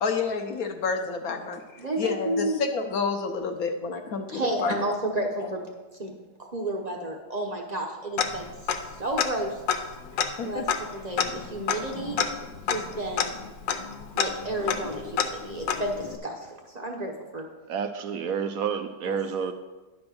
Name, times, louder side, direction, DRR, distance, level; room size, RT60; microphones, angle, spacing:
voice 1, 0.0-4.9 10.1-10.6, left 5 dB, 65° left, 1.0 m, -29 dB
voice 2, 1.8-2.6 4.3-5.6 6.0-6.1 6.4-8.5 9.0-9.6 10.4-10.6 10.9-12.2 12.7-13.3 14.1-17.4 19.0-19.2, right 1 dB, 40° right, 0.6 m, -31 dB
Tick-tock, 8.2-8.9 9.2-9.3 9.7-16.2, left 7 dB, 85° left, 1.4 m, -29 dB
voice 3, 17.7-19.5, right 7 dB, 75° right, 0.8 m, -29 dB
10.5 x 4.3 x 6.2 m
omnidirectional pair, 2.0 m